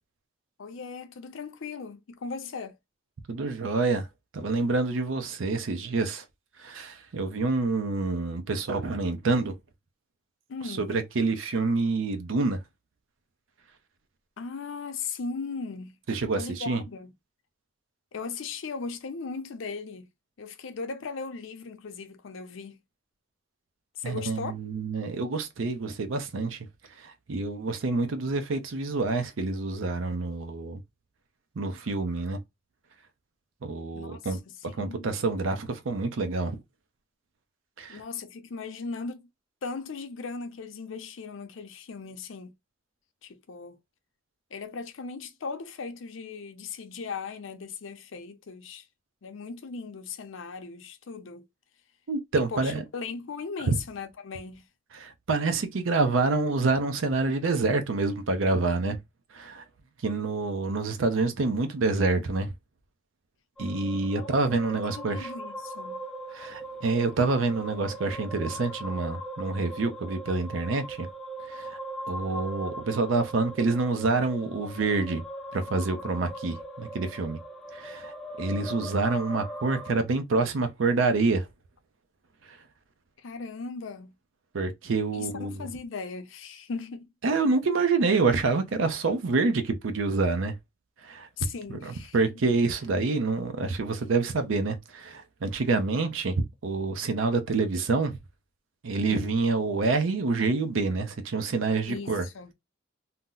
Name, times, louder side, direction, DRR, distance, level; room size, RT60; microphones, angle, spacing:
voice 1, 0.6-2.8 10.5-10.9 14.4-16.0 16.4-17.1 18.1-20.1 20.4-22.8 23.9-24.5 33.9-34.2 34.8-35.1 37.9-39.3 39.6-42.5 43.2-43.8 44.5-48.9 49.2-51.5 52.5-54.7 64.2-64.3 64.7-66.0 83.2-84.1 85.1-87.1 91.4-92.2 99.0-99.4 101.9-102.5, left 5 dB, 80° left, 0.5 m, -38 dB
voice 2, 3.3-4.1 4.3-6.2 6.6-9.5 10.6-12.6 16.1-16.8 24.0-26.7 27.0-30.8 31.6-32.4 33.6-34.4 34.7-36.6 37.8-38.0 52.1-52.8 53.7-53.8 54.9-59.0 59.3-59.6 60.0-62.5 63.6-65.3 66.3-71.1 71.5-71.8 72.1-75.2 75.5-77.4 77.7-78.1 78.4-81.5 82.4-82.6 84.5-85.7 87.2-90.5 91.0-91.3 91.7-98.2 98.8-102.2, right 3 dB, 85° right, 0.6 m, -27 dB
sound 1, 63.6-79.9, right 1 dB, 5° left, 0.4 m, -40 dB
2.7 x 2.0 x 3.7 m
head